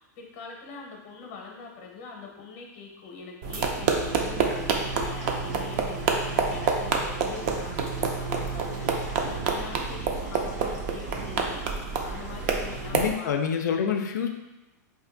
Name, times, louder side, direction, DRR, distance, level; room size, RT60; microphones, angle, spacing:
voice 1, 0.0-13.4, left 5 dB, 45° left, 1 dB, 0.7 m, -43 dB
sound 1, 3.4-13.1, right 5 dB, 35° right, 0.4 m, -28 dB
sound 2, 3.9-12.9, right 2 dB, 80° right, 1.2 m, -44 dB
voice 2, 12.9-14.4, left 7 dB, 90° left, 5 dB, 0.4 m, -27 dB
2.6 x 2.5 x 3.8 m, 1.1 s
supercardioid pair, 160°, 9 cm